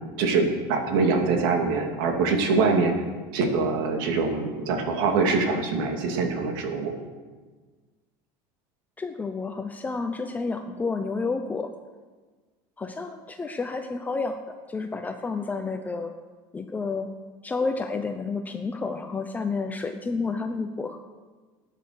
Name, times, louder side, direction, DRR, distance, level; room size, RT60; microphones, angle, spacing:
voice 1, 0.2-2.9 3.3-6.9, right 4 dB, 80° right, 3 dB, 2.6 m, -24 dB
voice 2, 9.0-11.7 12.8-14.4 14.7-16.1 16.5-17.1 17.4-21.0, left 4 dB, 15° left, 5 dB, 0.7 m, -30 dB
14.5 x 9.5 x 6.6 m, 1.4 s
cardioid pair, 140°, 11 cm